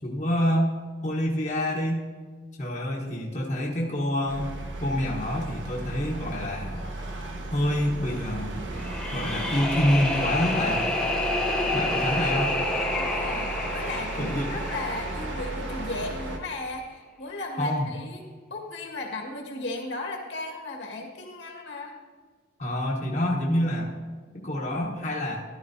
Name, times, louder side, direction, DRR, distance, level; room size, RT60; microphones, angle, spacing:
voice 1, 0.0-0.7 1.0-2.0 2.6-4.5 4.8-6.9 7.5-8.5 9.1-10.8 11.7-12.6 14.2-14.5 17.6-17.9 22.6-23.9 24.3-25.4, equal, 40° left, -4 dB, 1.2 m, -27 dB
sound 1, 4.3-16.4, right 2 dB, 85° right, 1.3 m, -34 dB
sound 2, 8.7-15.8, left 2 dB, 5° left, 0.8 m, -29 dB
voice 2, 12.9-18.2 18.5-22.0, left 2 dB, 75° left, 0 dB, 1.8 m, -36 dB
13.5 x 12.5 x 2.8 m, 1.5 s
head